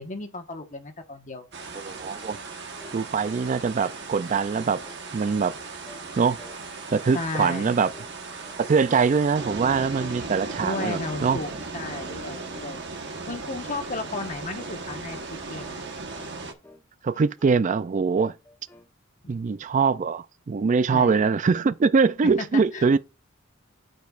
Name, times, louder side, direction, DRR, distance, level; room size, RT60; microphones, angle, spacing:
voice 1, 0.0-1.5 7.1-7.8 10.6-12.8 13.3-15.8 20.9-21.2 22.5-23.0, left 3 dB, 40° left, 1.3 m, -34 dB
sound 1, 1.5-16.5, right 3 dB, 60° right, 1.2 m, -37 dB
voice 2, 1.8-2.4 2.9-4.8 5.1-5.6 6.2-6.4 6.9-7.9 8.6-11.4 17.0-18.3 19.3-23.0, right 5 dB, 35° right, 0.4 m, -23 dB
sound 2, 2.8-3.0 3.3-3.5 3.8-5.0 5.3-5.6 5.8-6.1 6.4-6.6 6.9-7.6 7.9-8.7 8.9-9.2 9.4-9.7 10.0-10.2 10.5-10.7 11.0-11.2 11.5-11.7 12.0-12.2 12.5-12.8 13.0-13.2 13.6-13.8 14.1-14.3 14.6-14.8 15.1-15.8 16.1-16.9 17.1-17.9 18.2-18.9, left 2 dB, 10° left, 0.8 m, -51 dB
13.5 x 5.2 x 2.4 m
head